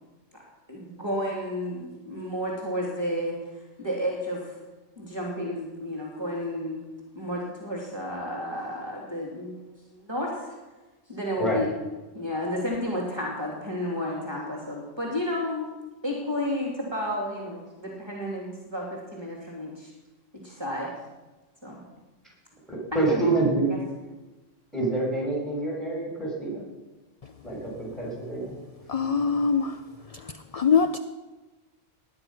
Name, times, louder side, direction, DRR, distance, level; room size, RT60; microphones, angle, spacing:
voice 1, 0.7-4.6 5.0-6.8 7.1-10.6 11.1-11.7 12.1-15.7 16.0-19.9 20.3-20.9 21.6-21.8 22.9-23.2 23.5-23.8, left 1 dB, 20° right, -2 dB, 2.9 m, -32 dB
voice 2, 22.7-23.6 24.7-26.6 27.4-28.6, right 2 dB, ahead, -3 dB, 6.3 m, -27 dB
voice 3, 28.9-29.8 30.1-31.0, left 6 dB, 50° left, 9 dB, 0.4 m, -23 dB
19.5 x 10.5 x 5.8 m, 1.2 s
omnidirectional pair, 1.3 m